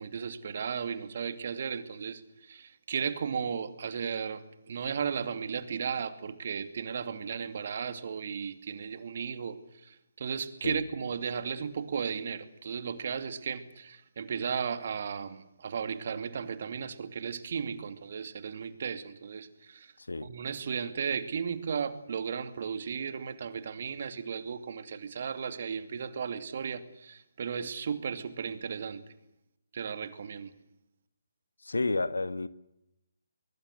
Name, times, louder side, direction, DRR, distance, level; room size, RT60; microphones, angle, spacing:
voice 1, 0.0-19.9 20.2-29.0 29.7-30.5, right 6 dB, 50° right, 2.5 m, -35 dB
voice 2, 20.0-20.3 31.6-32.5, left 3 dB, 75° left, 1.6 m, -31 dB
23.0 x 23.0 x 7.9 m
figure-of-eight pair, 140°, 0 cm